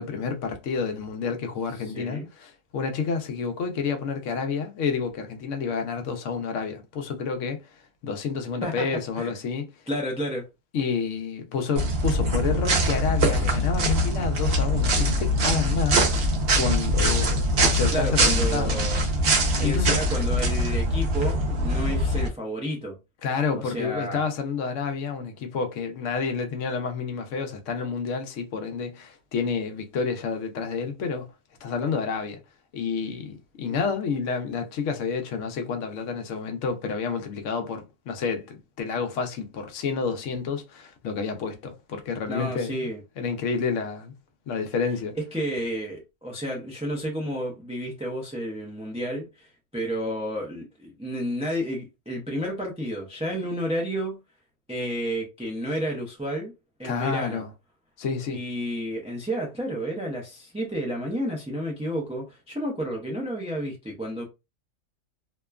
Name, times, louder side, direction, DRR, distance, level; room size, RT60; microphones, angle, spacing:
voice 1, 0.0-7.6 8.0-9.7 10.7-16.1 16.6-18.8 19.6-20.1 23.2-31.3 31.6-32.4 32.7-42.9 43.2-44.1 44.5-45.1 56.8-57.5 58.0-58.4, left 5 dB, 80° left, 1.0 m, -29 dB
voice 2, 1.8-2.3 8.6-8.9 9.2-9.3 9.9-10.5 17.9-19.0 19.6-23.0 23.5-24.2 42.3-43.0 45.2-54.2 54.7-56.5 56.8-57.4 58.3-64.2, equal, 10° right, 0.4 m, -31 dB
sound 1, 11.8-22.3, equal, 55° right, 0.9 m, -23 dB
2.9 x 2.2 x 2.3 m
omnidirectional pair, 1.3 m